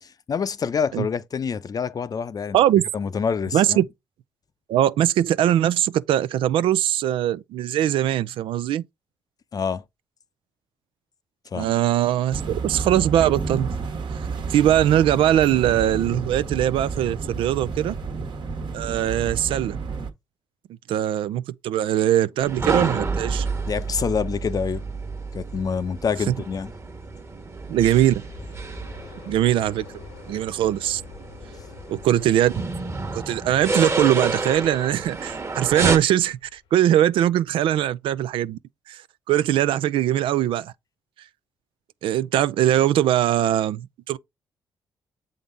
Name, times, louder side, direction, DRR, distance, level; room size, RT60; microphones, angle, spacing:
voice 1, 0.0-2.6 2.9-3.8 9.5-9.8 11.5-11.7 23.7-24.8 25.3-26.7, left 6 dB, 45° left, 0.6 m, -26 dB
voice 2, 3.5-3.8 4.7-8.8 11.5-13.7 14.5-18.0 18.7-19.8 20.9-23.5 26.3-26.4 27.7-28.2 29.3-29.9 30.3-31.0 31.9-32.5 33.1-38.6 38.9-39.0 39.3-40.7 42.0-44.2, right 12 dB, 80° right, 0.4 m, -21 dB
sound 1, 12.3-20.1, right 4 dB, 65° right, 1.3 m, -31 dB
sound 2, 22.4-36.0, right 3 dB, 30° right, 1.2 m, -30 dB
Aircraft, 27.1-37.8 38.3-38.4, left 8 dB, 85° left, 1.3 m, -48 dB
7.1 x 3.8 x 3.8 m
cardioid pair, 70°, 9 cm